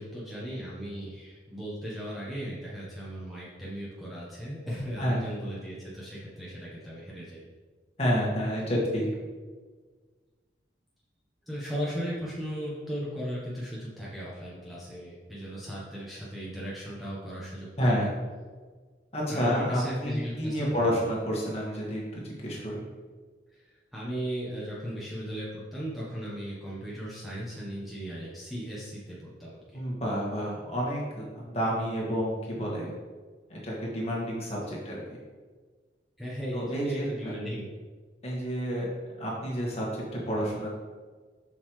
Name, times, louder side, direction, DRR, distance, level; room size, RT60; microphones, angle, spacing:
voice 1, 0.0-7.4 11.5-18.0 19.3-21.0 23.5-29.8 36.2-37.7, equal, ahead, -8 dB, 1.1 m, -37 dB
voice 2, 8.0-9.1 17.8-18.1 19.1-22.9 29.7-33.0 33.5-35.2 36.5-37.3 38.2-38.9 39.2-40.7, equal, 35° left, -4 dB, 1.7 m, -30 dB
7.1 x 6.5 x 3.2 m, 1.4 s
head